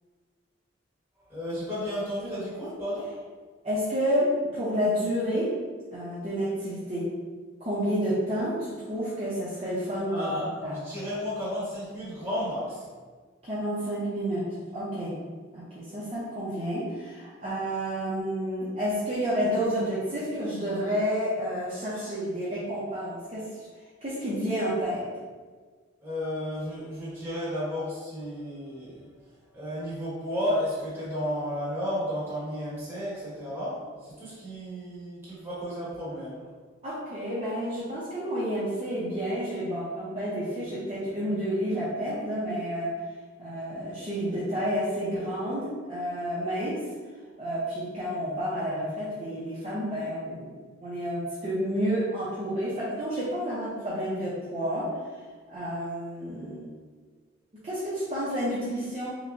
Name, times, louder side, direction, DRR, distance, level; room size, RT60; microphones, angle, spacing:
voice 1, 1.3-3.1 10.1-10.5 10.8-12.9 26.0-29.1 29.5-36.4, equal, 10° right, -10 dB, 1.4 m, -33 dB
voice 2, 3.6-5.5 5.9-7.1 7.6-10.8 13.4-14.5 14.7-15.2 15.5-23.4 24.0-25.0 36.8-42.9 43.4-46.8 47.4-54.9 55.5-56.8 57.6-59.1, equal, 30° right, -10 dB, 0.8 m, -30 dB
5.9 x 2.3 x 2.6 m, 1.5 s
head